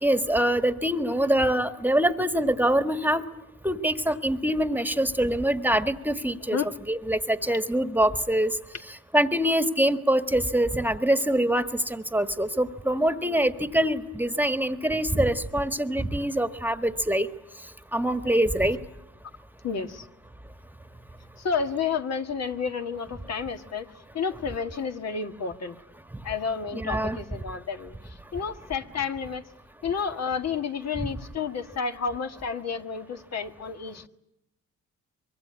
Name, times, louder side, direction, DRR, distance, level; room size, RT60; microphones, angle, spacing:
voice 1, 0.0-3.2 3.6-6.6 6.9-8.5 9.1-17.3 17.9-18.8 26.7-27.2, right 1 dB, 5° right, 10 dB, 1.5 m, -24 dB
voice 2, 19.6-20.1 21.4-23.9 24.1-25.8 26.2-28.0 28.3-29.4 29.8-34.1, left 6 dB, 60° left, 6 dB, 1.9 m, -30 dB
24.5 x 23.5 x 9.7 m, 0.81 s
cardioid pair, 90°, 30 cm